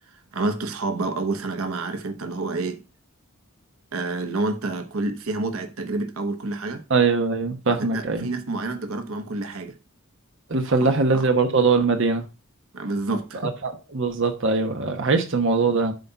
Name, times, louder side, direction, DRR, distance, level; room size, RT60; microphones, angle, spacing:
voice 1, 0.3-2.8 3.9-6.8 7.7-9.8 10.8-11.2 12.7-13.5, right 3 dB, 90° right, 1.1 m, -28 dB
voice 2, 6.9-8.3 10.5-12.2 13.4-15.9, right 4 dB, 60° right, 1.0 m, -22 dB
7.8 x 4.1 x 5.7 m
head